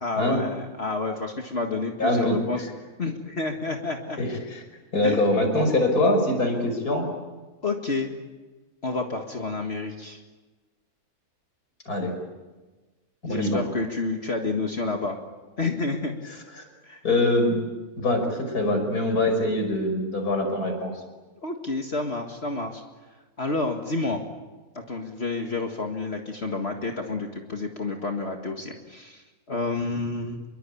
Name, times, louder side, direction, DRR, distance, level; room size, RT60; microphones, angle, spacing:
voice 1, 0.0-2.7 3.0-4.2 5.0-5.3 7.6-8.1 8.8-10.2 13.2-15.2 15.6-16.1 16.8-17.0 21.4-22.8 23.4-24.3 24.7-30.4, left 3 dB, 45° left, 2 dB, 2.1 m, -29 dB
voice 2, 2.0-2.4 4.2-4.6 4.9-7.1 11.9-12.1 13.3-13.6 17.0-17.6 18.0-20.9, left 1 dB, 80° left, 5 dB, 6.0 m, -23 dB
27.0 x 23.0 x 8.6 m, 1.2 s
omnidirectional pair, 1.6 m